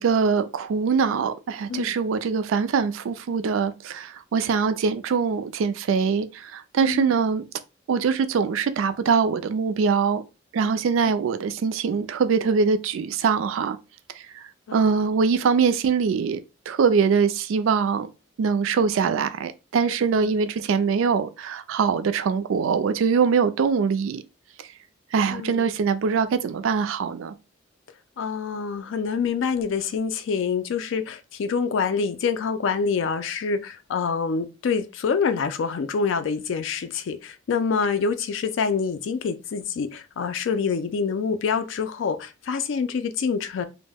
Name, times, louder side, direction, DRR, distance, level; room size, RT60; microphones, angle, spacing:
voice 1, 0.0-7.4 7.9-10.2 10.5-13.8 14.7-16.4 16.7-18.1 18.4-24.2 25.1-27.3, right 5 dB, 75° right, 0.3 m, -23 dB
voice 2, 6.8-7.2 14.7-15.1 20.1-20.3 25.3-25.7 28.2-43.7, left 5 dB, 65° left, 0.4 m, -26 dB
2.2 x 2.0 x 3.3 m
head